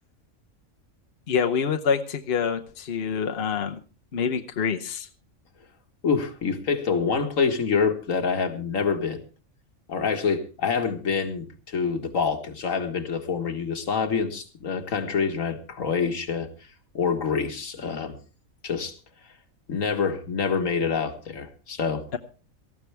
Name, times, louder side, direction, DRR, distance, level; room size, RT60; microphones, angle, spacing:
voice 1, 1.3-3.8 4.1-5.1 22.1-22.2, left 6 dB, 50° left, 5 dB, 1.1 m, -26 dB
voice 2, 6.0-9.2 9.9-16.5 16.9-18.2 18.6-19.0 19.7-22.1, left 5 dB, 70° left, 6 dB, 1.9 m, -26 dB
18.5 x 14.5 x 3.4 m, 0.35 s
omnidirectional pair, 1.4 m